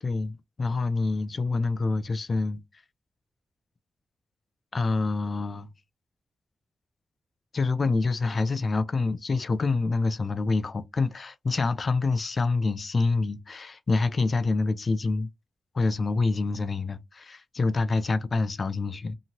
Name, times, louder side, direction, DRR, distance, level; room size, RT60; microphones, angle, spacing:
voice 1, 0.0-2.6 4.7-5.7 7.5-15.3 15.7-19.2, left 3 dB, 40° left, 0.3 m, -26 dB
2.8 x 2.7 x 2.8 m
wide cardioid pair, 130°, 0 cm